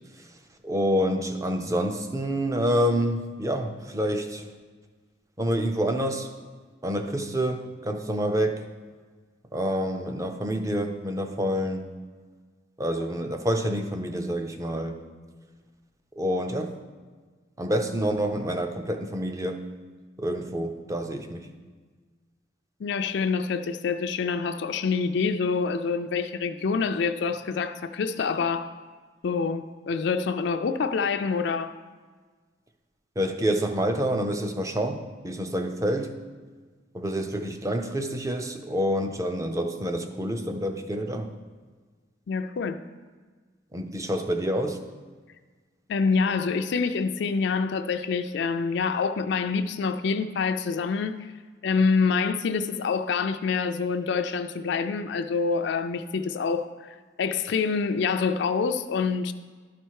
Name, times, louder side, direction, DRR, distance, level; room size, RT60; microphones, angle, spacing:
voice 1, 0.6-4.4 5.4-6.3 6.8-8.6 9.5-11.9 12.8-15.0 16.2-16.7 17.6-19.6 20.2-21.5 33.2-36.1 36.9-41.3 43.7-44.8, equal, 15° right, 0.5 m, -27 dB
voice 2, 22.8-28.7 29.2-31.7 42.3-42.8 45.9-51.3 51.6-59.3, left 5 dB, 60° left, 0.4 m, -26 dB
12.0 x 4.4 x 4.6 m
head